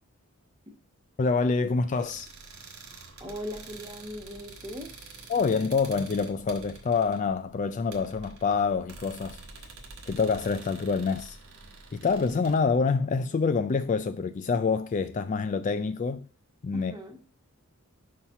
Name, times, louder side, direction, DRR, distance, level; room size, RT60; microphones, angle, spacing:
voice 1, 1.2-2.3 5.3-9.4 10.1-11.4 11.9-16.3 16.6-16.9, left 4 dB, 35° left, 0.3 m, -26 dB
sound 1, 1.9-12.6, right 3 dB, 75° right, 1.3 m, -47 dB
voice 2, 3.2-4.9 16.7-17.2, left 1 dB, 20° right, 1.2 m, -39 dB
5.6 x 4.3 x 5.5 m
head